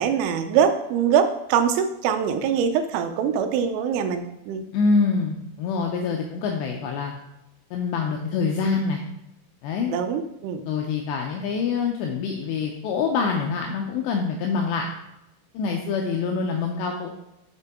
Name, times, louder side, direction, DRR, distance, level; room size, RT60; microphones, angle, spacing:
voice 1, 0.0-4.6 9.9-10.7, right 7 dB, 90° right, 8 dB, 3.3 m, -23 dB
voice 2, 4.7-7.1 7.7-9.0 9.6-9.9 10.7-14.9 15.5-17.1, left 5 dB, 85° left, 1 dB, 2.5 m, -25 dB
7.2 x 6.6 x 3.5 m, 0.91 s
omnidirectional pair, 5.6 m